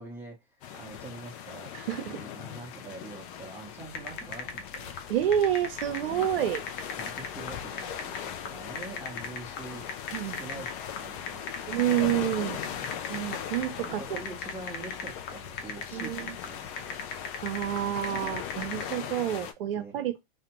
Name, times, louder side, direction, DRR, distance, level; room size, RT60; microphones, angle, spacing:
voice 1, 0.0-1.7 2.1-4.9 6.1-6.5 7.0-9.9 10.2-10.7 11.0-12.9 13.9-17.0 17.8-18.2 19.7-20.2, right 3 dB, 5° right, 0.8 m, -45 dB
sound 1, 0.6-19.5, left 9 dB, 35° left, 0.4 m, -39 dB
voice 2, 1.9-2.2 5.1-6.6 8.5-8.7 10.1-10.4 11.7-12.6 13.1-14.0 15.9-16.3 17.4-20.2, right 11 dB, 65° right, 0.7 m, -28 dB
sound 2, 3.8-18.9, left 5 dB, 50° left, 0.8 m, -39 dB
2.4 x 2.2 x 2.9 m
hypercardioid pair, 125°, 31 cm